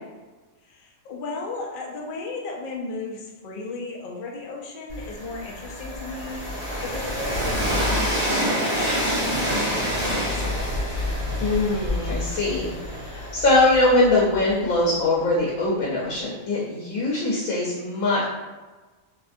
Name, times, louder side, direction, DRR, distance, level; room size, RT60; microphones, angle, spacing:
voice 1, 0.6-10.8, left 3 dB, 60° left, -1 dB, 0.5 m, -35 dB
Train, 4.9-14.7, equal, 30° right, 1.3 m, -27 dB
voice 2, 11.4-18.3, left 2 dB, 90° left, -5 dB, 1.1 m, -22 dB
2.7 x 2.5 x 2.5 m, 1.2 s
omnidirectional pair, 1.4 m